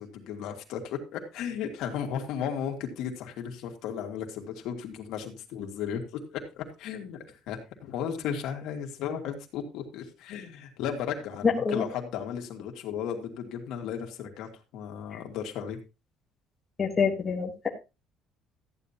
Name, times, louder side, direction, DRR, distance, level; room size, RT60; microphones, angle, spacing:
voice 1, 0.0-15.8, left 8 dB, 60° left, 3 dB, 2.4 m, -35 dB
voice 2, 11.5-11.8 15.1-15.2 16.8-17.7, left 5 dB, 20° left, -1 dB, 1.4 m, -27 dB
14.0 x 10.0 x 2.9 m, 0.28 s
cardioid pair, 180°, 0 cm